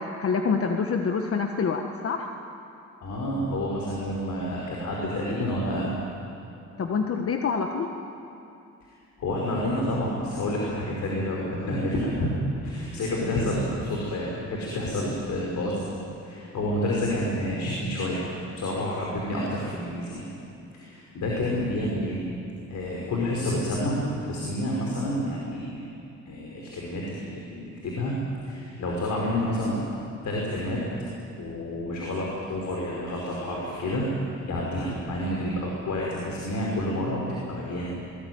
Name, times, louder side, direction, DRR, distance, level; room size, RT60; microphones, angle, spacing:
voice 1, 0.0-2.3 6.8-7.9, left 5 dB, 50° left, 4 dB, 1.5 m, -26 dB
voice 2, 3.0-5.9 8.8-8.9 9.2-12.3 12.6-15.8 16.2-18.2 18.6-20.2 20.7-22.2 22.7-25.9 26.2-28.1 28.4-29.8 30.2-30.8 31.4-37.2 37.5-37.9, left 1 dB, 70° left, -3 dB, 5.0 m, -29 dB
21.5 x 20.5 x 9.4 m, 2.7 s
cardioid pair, 90°, 30 cm